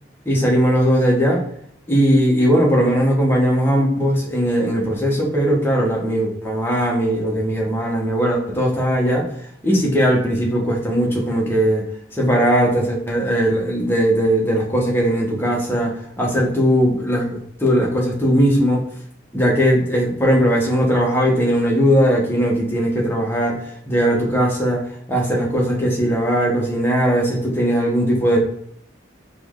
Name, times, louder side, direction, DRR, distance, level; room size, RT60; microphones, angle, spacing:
voice 1, 0.2-1.4 1.9-9.3 9.6-11.9 12.1-18.8 19.3-23.6 23.9-28.4, equal, 10° left, -2 dB, 1.1 m, -19 dB
4.3 x 3.1 x 3.7 m, 0.69 s
head